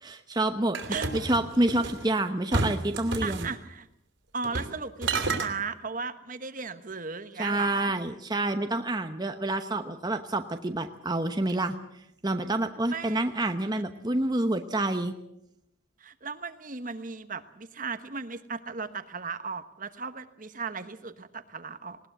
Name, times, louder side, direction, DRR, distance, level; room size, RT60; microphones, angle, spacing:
voice 1, 0.0-0.8 1.1-3.5 7.4-11.7 12.2-15.1, right 2 dB, 20° right, 7 dB, 1.0 m, -28 dB
sound 1, 0.7-2.0 2.5-3.5 4.4-4.8 5.0-5.5, right 3 dB, 70° right, 3.1 m, -30 dB
voice 2, 3.2-3.9 4.3-7.9 12.9-13.5 13.7-13.8 16.0-22.0, right 5 dB, 40° right, 11 dB, 1.1 m, -36 dB
20.0 x 19.0 x 8.1 m, 0.81 s
head